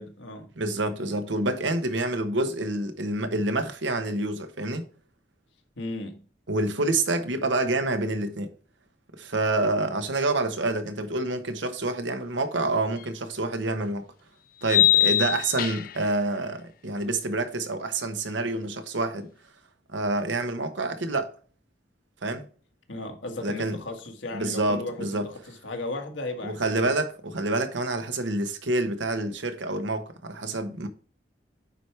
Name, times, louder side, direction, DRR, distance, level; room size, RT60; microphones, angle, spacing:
voice 1, 0.0-0.5 5.8-6.3 22.9-26.9, left 2 dB, 85° left, 1.7 m, -36 dB
voice 2, 0.6-4.8 6.5-8.5 9.2-14.0 14.6-19.3 19.9-21.3 22.2-22.4 23.4-23.8 24.3-25.3 26.4-30.9, right 2 dB, 85° right, 1.1 m, -27 dB
sound 1, 13.0-13.1 14.6-16.1, left 13 dB, 50° left, 0.3 m, -22 dB
9.1 x 4.7 x 3.3 m
head